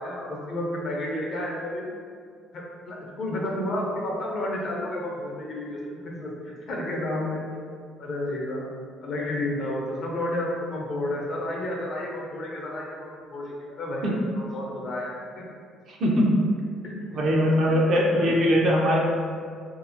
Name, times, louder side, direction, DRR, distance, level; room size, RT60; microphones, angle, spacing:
voice 1, 0.0-1.9 2.5-5.8 6.0-7.4 8.0-8.7 9.0-15.4 16.8-16.9 17.3-17.4 17.7-17.8 18.1-18.4, left 1 dB, 55° left, -2 dB, 0.6 m, -31 dB
voice 2, 15.9-16.3 17.1-19.0, equal, 60° right, -2 dB, 0.6 m, -21 dB
2.7 x 2.4 x 2.5 m, 2.1 s
supercardioid pair, 70°, 0 cm